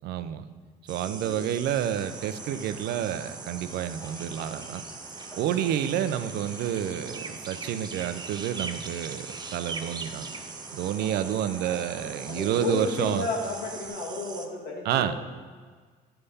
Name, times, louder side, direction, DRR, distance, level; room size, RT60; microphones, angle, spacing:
voice 1, 0.0-0.4 0.9-4.8 5.3-10.3 10.7-13.3 14.8-15.1, right 10 dB, 75° right, 11 dB, 0.5 m, -29 dB
sound 1, 0.9-14.5, right 4 dB, 25° right, 0.6 m, -41 dB
voice 2, 1.0-1.6 5.5-5.7 11.0-11.1 11.7-11.8 12.2-15.2, left 3 dB, 80° left, -2 dB, 1.9 m, -33 dB
sound 2, 1.9-13.9, equal, 20° left, 1.3 m, -47 dB
9.6 x 3.4 x 5.5 m, 1.5 s
cardioid pair, 110°, 17 cm